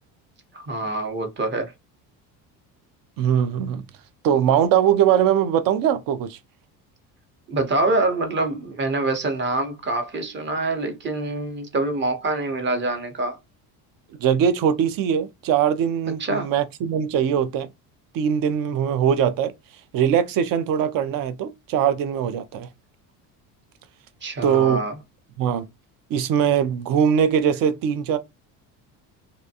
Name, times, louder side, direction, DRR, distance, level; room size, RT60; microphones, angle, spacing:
voice 1, 0.5-1.7 7.5-13.4 16.2-16.5 24.2-24.9, right 2 dB, 30° right, 0.8 m, -25 dB
voice 2, 3.2-3.8 4.2-6.4 14.2-17.7 18.1-19.5 19.9-22.7 24.4-24.8 25.4-25.7 26.1-28.2, right 8 dB, 55° right, 0.6 m, -21 dB
2.6 x 2.1 x 2.7 m
cardioid pair, 110°, 40 cm